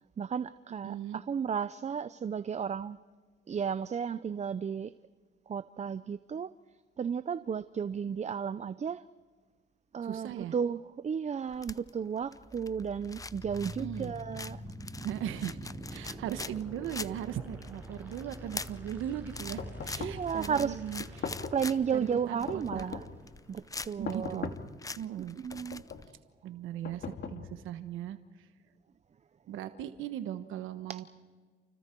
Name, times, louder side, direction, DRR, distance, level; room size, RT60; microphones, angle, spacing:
voice 1, 0.2-3.0 3.5-4.9 5.5-6.5 7.0-9.0 9.9-14.6 16.0-16.1 20.0-20.8 21.5-23.0 23.5-24.5 25.4-25.8 30.9-31.0, right 7 dB, 35° right, 14 dB, 0.6 m, -33 dB
voice 2, 0.8-1.2 10.0-10.5 13.6-14.1 15.0-21.3 21.9-22.9 24.0-24.5 25.0-25.4 26.4-28.5 29.5-31.0, right 10 dB, 85° right, 9 dB, 1.3 m, -38 dB
sound 1, 11.4-26.1, left 3 dB, 15° left, 0.6 m, -45 dB
sound 2, 12.4-24.4, right 1 dB, 10° right, 6.7 m, -46 dB
sound 3, 19.6-20.3 21.0-21.7 22.5-23.2 24.1-24.8 25.5-26.1 26.8-27.7, left 5 dB, 60° left, 2.4 m, -40 dB
29.5 x 29.0 x 4.6 m, 1.5 s
cardioid pair, 90°, 20 cm